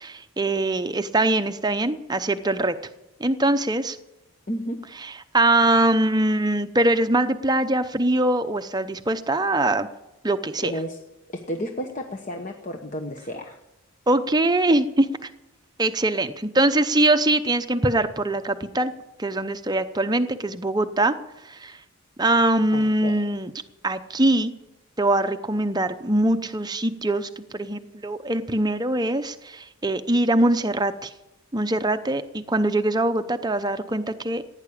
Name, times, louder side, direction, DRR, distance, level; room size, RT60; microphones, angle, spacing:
voice 1, 0.0-2.8 3.2-4.0 5.3-9.9 10.2-10.7 14.1-15.3 15.8-18.9 19.2-21.1 21.4-21.8 22.2-23.5 23.8-24.5 25.0-31.1 31.5-34.4, right 2 dB, 20° right, 9 dB, 0.7 m, -22 dB
voice 2, 10.6-11.0 11.5-13.6 22.7-23.2, equal, 35° left, 4 dB, 1.0 m, -32 dB
16.5 x 9.9 x 8.6 m, 0.95 s
head